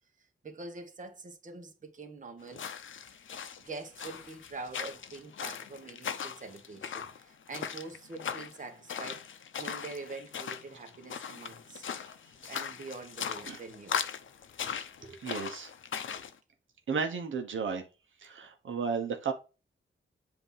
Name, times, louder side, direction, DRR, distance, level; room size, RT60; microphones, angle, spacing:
voice 1, 0.4-2.6 3.1-3.2 3.6-9.2 9.6-11.8 12.5-14.0 15.0-15.2, right 3 dB, 40° right, 1.3 m, -45 dB
sound 1, 2.5-16.3, left 7 dB, 75° left, 0.7 m, -39 dB
voice 2, 15.2-15.7 16.9-17.8 18.2-19.3, right 5 dB, 75° right, 1.0 m, -33 dB
7.9 x 2.9 x 5.6 m
wide cardioid pair, 145°, 21 cm